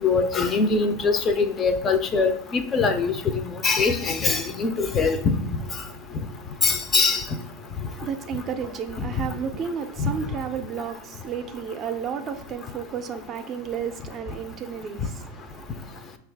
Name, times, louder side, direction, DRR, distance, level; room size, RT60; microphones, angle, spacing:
voice 1, 0.0-3.1 3.6-5.4 6.6-7.2 10.0-10.1, left 4 dB, 30° left, 0.4 m, -22 dB
voice 2, 7.9-16.0, right 7 dB, 35° right, 0.4 m, -32 dB
5.5 x 2.3 x 3.3 m
hypercardioid pair, 110°, 0 cm